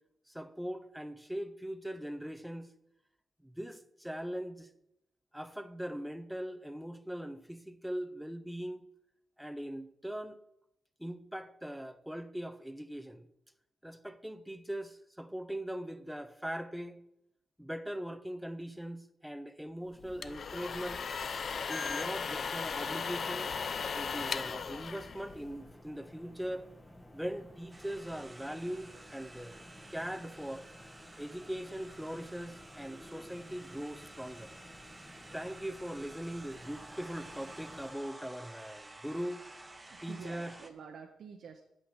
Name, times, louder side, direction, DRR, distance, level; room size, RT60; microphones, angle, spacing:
voice 1, 0.3-2.7 3.4-4.7 5.3-8.9 9.4-10.4 11.0-13.3 13.8-17.0 17.6-21.0 21.7-23.5 23.9-26.7 27.1-29.6 29.9-30.7 31.2-34.5 35.3-39.5 40.0-40.6, equal, ahead, 0.6 m, -40 dB
sound 1, 20.0-25.7, left 5 dB, 50° left, 0.5 m, -37 dB
sound 2, 22.6-37.9, left 1 dB, 20° left, 1.3 m, -54 dB
sound 3, 27.7-40.7, right 2 dB, 15° right, 1.0 m, -52 dB
voice 2, 39.9-41.6, right 6 dB, 75° right, 0.8 m, -48 dB
8.8 x 5.7 x 7.3 m
cardioid pair, 105°, 0 cm